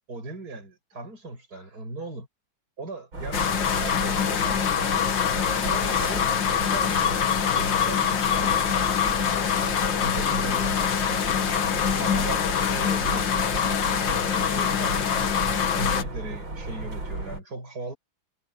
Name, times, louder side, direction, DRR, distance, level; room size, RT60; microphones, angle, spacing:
voice 1, 0.1-2.3 2.8-8.6 10.0-11.3 11.6-13.6 14.1-18.0, right 2 dB, 50° right, 7.5 m, -38 dB
sound 1, 3.1-17.4, right 2 dB, 85° right, 8.9 m, -35 dB
sound 2, 3.3-16.0, left 8 dB, 70° left, 2.2 m, -24 dB
omnidirectional pair, 2.1 m